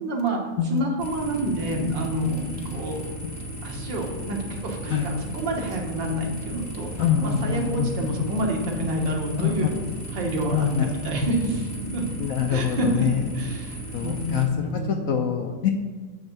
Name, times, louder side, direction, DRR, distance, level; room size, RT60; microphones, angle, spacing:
voice 1, 0.0-3.0 3.6-9.7 10.1-12.0 12.5-13.1 13.3-15.2, right 1 dB, 85° right, 0 dB, 2.0 m, -28 dB
sound 1, 1.0-14.4, right 2 dB, 20° left, 0.4 m, -36 dB
voice 2, 7.0-7.9 9.4-9.5 10.5-10.9 12.2-13.1 13.9-15.7, left 8 dB, 70° left, 4 dB, 0.8 m, -25 dB
8.7 x 3.6 x 6.6 m, 1.5 s
omnidirectional pair, 1.9 m